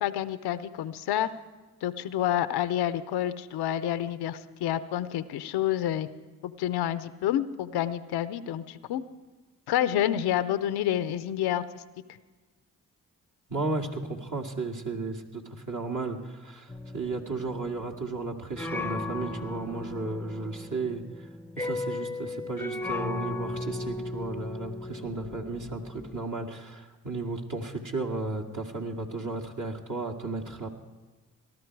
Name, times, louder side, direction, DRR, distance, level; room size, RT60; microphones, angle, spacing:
voice 1, 0.0-1.3 1.8-6.1 6.4-9.0 9.7-11.8, left 11 dB, 85° left, 14 dB, 0.7 m, -28 dB
voice 2, 13.5-21.3 21.6-30.7, right 3 dB, 50° right, 2 dB, 2.1 m, -34 dB
sound 1, 16.7-26.2, left 2 dB, 5° left, 0.7 m, -36 dB
19.0 x 12.5 x 4.7 m, 1.3 s
supercardioid pair, 45°, 38 cm